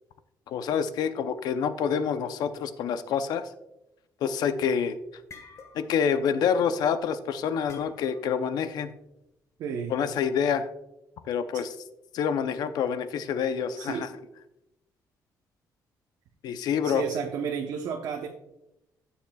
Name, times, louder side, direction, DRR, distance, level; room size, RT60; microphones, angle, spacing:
voice 1, 0.5-3.5 4.2-5.0 5.7-8.9 9.9-10.7 11.3-11.7 12.1-14.1 16.4-17.0, left 7 dB, 80° left, 10 dB, 0.6 m, -27 dB
sound 1, 5.1-6.1 6.4-6.7 7.7-8.4, left 4 dB, 45° left, 1.4 m, -49 dB
voice 2, 9.6-9.9 13.8-14.1 16.8-18.3, right 7 dB, 80° right, 1 dB, 0.9 m, -32 dB
15.0 x 7.1 x 2.3 m, 0.89 s
cardioid pair, 140°, 7 cm